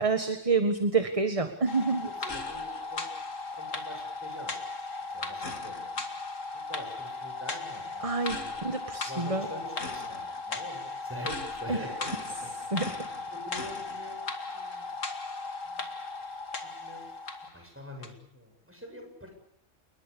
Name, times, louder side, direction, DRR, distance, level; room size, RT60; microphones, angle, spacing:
voice 1, 0.0-2.1 8.0-9.5 11.7-11.8 12.7-13.1, right 4 dB, 25° right, 7 dB, 1.7 m, -28 dB
sound 1, 1.7-17.6 18.0-18.1, left 3 dB, 90° left, 2.7 m, -37 dB
voice 2, 2.0-3.1 3.6-4.6 5.1-5.8 6.5-8.6 9.1-12.5 13.3-14.9 15.6-15.9 16.6-17.1 17.5-19.3, equal, 10° right, 3 dB, 7.9 m, -45 dB
29.5 x 21.0 x 7.0 m, 0.64 s
omnidirectional pair, 1.3 m